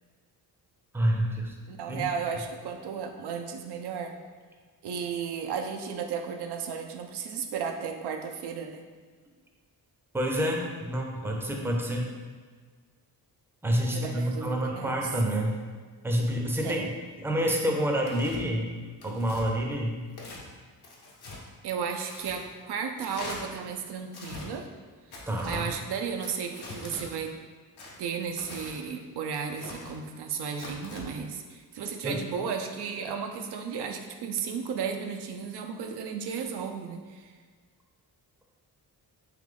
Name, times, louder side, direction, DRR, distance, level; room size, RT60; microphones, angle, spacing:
voice 1, 0.9-1.5 1.9-2.0 10.1-12.1 13.6-15.6 16.0-16.9 17.2-18.7 19.0-20.0 25.3-25.7 32.0-32.2, equal, 5° right, 0 dB, 0.5 m, -28 dB
voice 2, 1.7-4.1 4.8-8.8 13.9-15.1 16.6-16.9 21.6-24.7 25.4-27.3 28.0-37.3, right 6 dB, 75° right, 5 dB, 0.5 m, -34 dB
Tearing, 18.0-18.4 19.0-19.4 20.1-20.4 20.8-21.4 21.9-22.4 23.0-23.4 24.1-24.5 25.1-25.6 26.2-27.1 27.8-28.8 29.3-29.9 30.5-31.0, left 2 dB, 70° left, 1.0 m, -43 dB
3.3 x 3.0 x 3.7 m, 1.5 s
cardioid pair, 80°, 40 cm